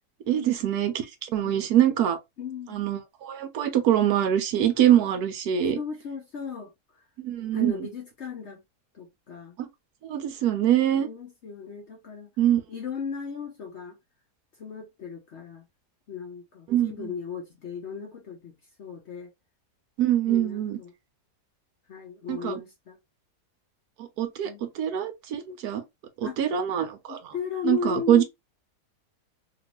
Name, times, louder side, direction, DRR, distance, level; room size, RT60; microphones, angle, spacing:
voice 1, 0.3-0.9 1.2-2.2 2.7-5.8 7.2-7.9 9.6-9.7 10.0-11.1 12.4-12.6 16.7-17.1 20.0-20.8 22.3-22.6 24.0-25.8 26.2-27.3 27.6-28.2, right 11 dB, 70° right, 1.1 m, -24 dB
voice 2, 2.4-2.8 5.8-6.7 7.5-8.6 8.9-9.6 11.0-12.3 12.7-14.0 14.6-15.6 16.1-18.5 18.8-19.3 20.3-20.9 21.9-23.0 24.4-24.6 26.2-26.4 27.1-28.2, left 6 dB, 55° left, 0.8 m, -36 dB
2.9 x 2.5 x 3.0 m
omnidirectional pair, 1.8 m